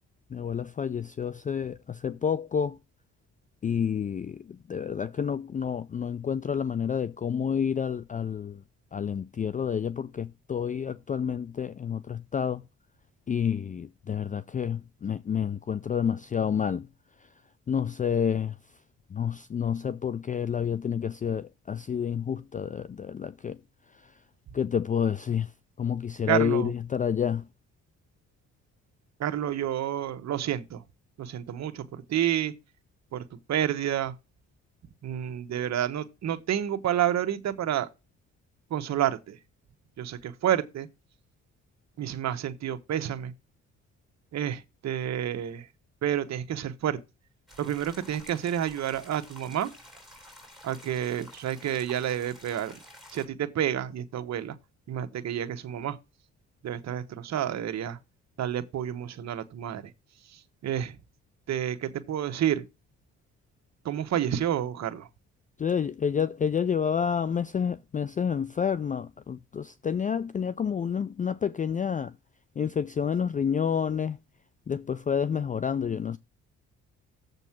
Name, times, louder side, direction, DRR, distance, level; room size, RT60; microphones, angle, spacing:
voice 1, 0.3-2.8 3.6-8.6 8.9-12.6 13.3-16.9 17.2-17.3 17.7-18.6 19.1-23.6 23.9-24.1 24.5-25.5 25.8-27.5 65.6-72.2 72.6-74.2 74.7-76.2, left 7 dB, 25° left, 0.4 m, -29 dB
voice 2, 26.3-26.7 29.2-30.8 31.2-32.5 33.1-34.1 35.0-37.9 38.7-39.4 40.0-40.9 42.0-43.3 44.3-45.7 46.0-47.0 47.6-49.7 50.6-52.8 53.1-54.5 54.9-56.0 56.6-58.0 58.4-59.9 60.3-61.0 61.5-62.6 63.8-65.1, right 10 dB, 60° right, 1.2 m, -29 dB
sound 1, 47.5-53.3, equal, ahead, 3.7 m, -50 dB
7.4 x 5.3 x 5.8 m
cardioid pair, 90°, 30 cm